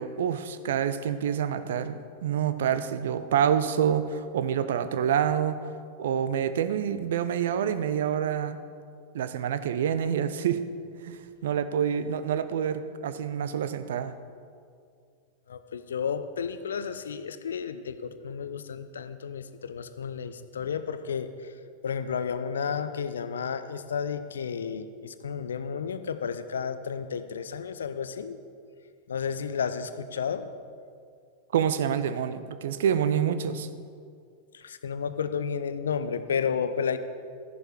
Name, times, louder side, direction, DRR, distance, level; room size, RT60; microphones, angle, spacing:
voice 1, 0.0-5.6 6.0-8.6 9.1-10.6 11.0-14.1 31.5-33.7, right 8 dB, 60° right, 12 dB, 0.6 m, -27 dB
voice 2, 15.5-21.5 21.8-28.4 29.1-30.5 34.5-37.0, left 6 dB, 65° left, 12 dB, 0.6 m, -32 dB
13.5 x 11.0 x 4.7 m, 2.3 s
figure-of-eight pair, 90°, 0 cm